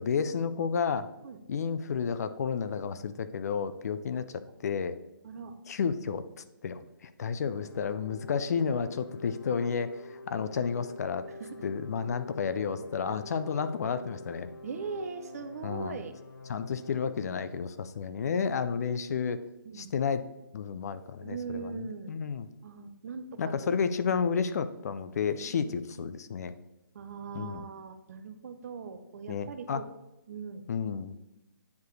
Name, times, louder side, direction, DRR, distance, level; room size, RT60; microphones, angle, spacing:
voice 1, 0.0-1.1 1.5-4.3 4.6-4.9 5.7-6.2 6.6-11.2 11.6-14.5 15.6-16.0 16.5-19.4 19.7-20.3 20.5-22.5 23.4-26.5 27.3-27.7 29.3-29.8 30.7-31.2, left 6 dB, 45° left, 12 dB, 0.5 m, -31 dB
voice 2, 5.2-5.6 11.4-11.7 14.6-16.1 18.0-18.2 19.6-19.9 21.2-22.1 22.6-23.5 25.4-25.8 26.9-29.8 30.3-30.6, right 5 dB, 45° right, 9 dB, 0.7 m, -40 dB
sound 1, 7.5-17.4, left 3 dB, 70° left, 1.0 m, -46 dB
9.2 x 4.6 x 3.2 m, 0.96 s
hypercardioid pair, 155°, 12 cm